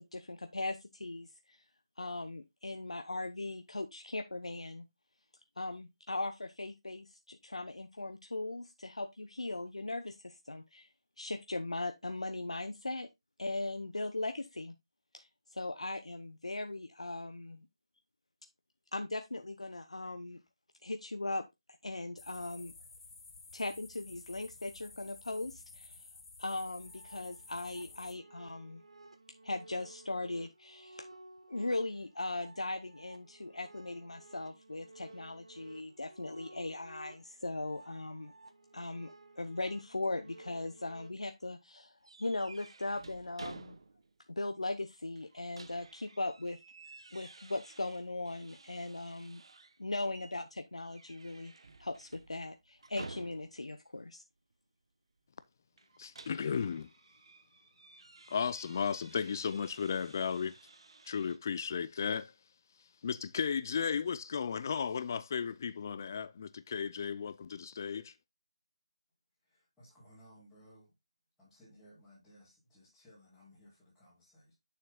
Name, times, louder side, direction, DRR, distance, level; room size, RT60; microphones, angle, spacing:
voice 1, 0.0-1.6 2.0-4.9 5.6-10.9 11.2-13.1 13.4-14.7 15.1-17.7 18.9-20.4 20.8-21.4 21.8-22.7 23.5-26.0 26.4-28.8 29.4-31.1 31.5-38.3 38.7-43.8 44.4-46.6 47.1-49.4 49.8-51.5 51.8-54.2, left 2 dB, 85° left, 0.8 m, -39 dB
sound 1, 22.2-28.1, left 3 dB, 45° left, 1.6 m, -53 dB
sound 2, 26.7-41.1, right 2 dB, 75° right, 1.4 m, -55 dB
sound 3, 42.0-44.2 44.5-44.6 45.2-49.8 50.1-50.4 50.8-53.7 55.8-61.4, right 3 dB, 55° right, 0.8 m, -53 dB
voice 2, 56.0-56.9 58.3-60.6 61.1-62.3 63.0-68.1, left 6 dB, 30° left, 0.4 m, -35 dB
voice 3, 69.4-70.9 71.4-74.5, equal, ahead, 4.1 m, -60 dB
8.9 x 7.0 x 2.3 m
figure-of-eight pair, 165°, 3 cm